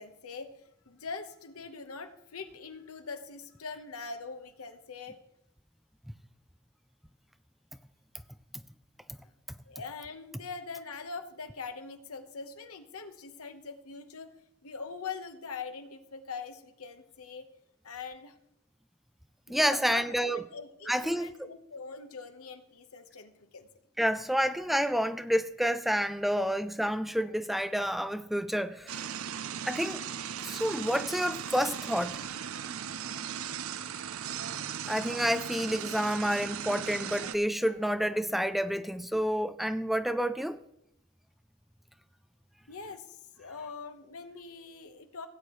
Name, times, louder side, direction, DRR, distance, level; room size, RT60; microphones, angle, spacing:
voice 1, 0.0-5.2 9.2-9.3 9.6-14.3 14.6-17.5 17.8-18.3 19.5-23.7 42.7-45.3, left 5 dB, 80° left, 1.2 m, -43 dB
voice 2, 19.5-20.4 20.9-21.3 24.0-29.1 29.7-30.0 30.4-32.2 34.9-40.6, equal, ahead, 0.3 m, -29 dB
sound 1, 28.9-37.4, right 8 dB, 65° right, 0.5 m, -38 dB
17.0 x 8.8 x 3.2 m
head